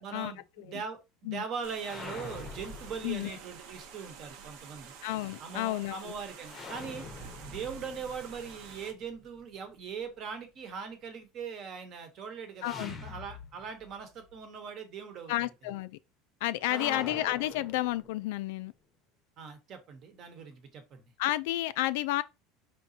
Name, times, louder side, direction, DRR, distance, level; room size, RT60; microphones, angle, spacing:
voice 1, 0.0-4.9 5.4-7.1 7.4-15.5 16.7-17.1 19.4-21.0, right 6 dB, 35° right, 1.0 m, -41 dB
sound 1, 1.6-8.9, right 7 dB, 55° right, 0.8 m, -50 dB
sound 2, 1.8-3.8 6.4-9.4 12.6-14.0 14.3-14.4 16.6-18.4, left 3 dB, 20° left, 0.8 m, -45 dB
voice 2, 3.0-3.3 5.0-6.1 12.6-13.0 15.3-16.0 16.4-18.7 21.2-22.2, left 16 dB, 70° left, 0.3 m, -31 dB
4.9 x 3.6 x 2.7 m
cardioid pair, 175°, 0 cm